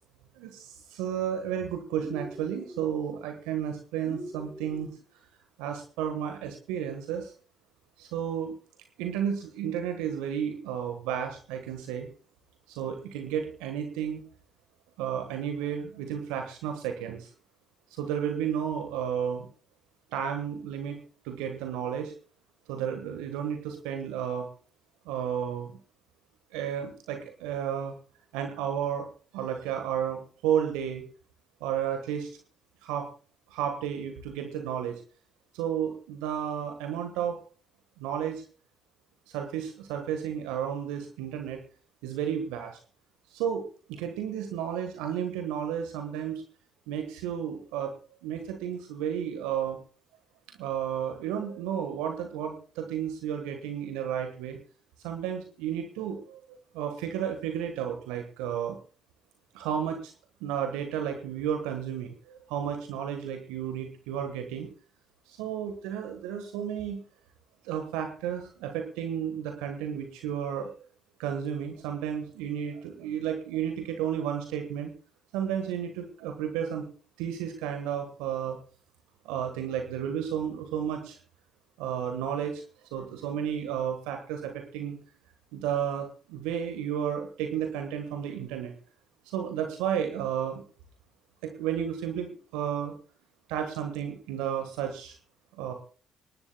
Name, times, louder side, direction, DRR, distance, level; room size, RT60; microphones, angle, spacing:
voice 1, 0.3-4.9 5.6-7.3 8.0-8.5 9.0-12.1 12.7-14.2 15.0-17.3 17.9-19.5 20.1-21.0 21.2-22.1 22.7-24.5 25.0-25.7 26.5-27.9 28.3-29.1 29.3-31.0 31.6-32.3 32.8-33.1 33.5-35.0 35.5-37.4 38.0-38.4 39.3-41.6 42.0-42.8 43.3-46.4 46.9-47.9 48.2-49.8 50.6-54.6 55.0-58.8 59.5-60.1 60.4-64.7 65.3-67.0 67.6-70.8 71.2-74.9 75.3-76.8 77.2-78.6 79.2-81.2 81.8-82.6 82.9-85.0 85.5-88.7 89.3-90.6 91.4-92.9 93.5-95.2 95.6-95.7, right 9 dB, 75° right, 5 dB, 1.5 m, -32 dB
sound 1, 2.0-2.9 4.1-5.0, equal, ahead, 1.0 m, -42 dB
25.0 x 11.5 x 2.3 m, 0.40 s
hypercardioid pair, 45°, 0 cm